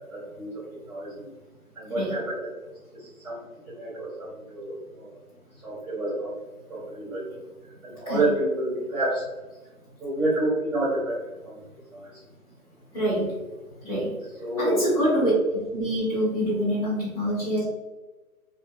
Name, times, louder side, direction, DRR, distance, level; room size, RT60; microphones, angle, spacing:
voice 1, 0.1-1.3 1.7-2.5 2.9-5.1 5.6-6.3 6.7-7.4 7.8-9.2 10.0-11.6 11.9-12.2 14.4-15.3, right 1 dB, 5° right, -10 dB, 1.4 m, -29 dB
voice 2, 12.9-13.3 13.8-14.1 14.6-15.3 15.7-17.6, equal, 25° left, -10 dB, 1.3 m, -25 dB
2.6 x 2.6 x 2.2 m, 1.2 s
hypercardioid pair, 160°, 44 cm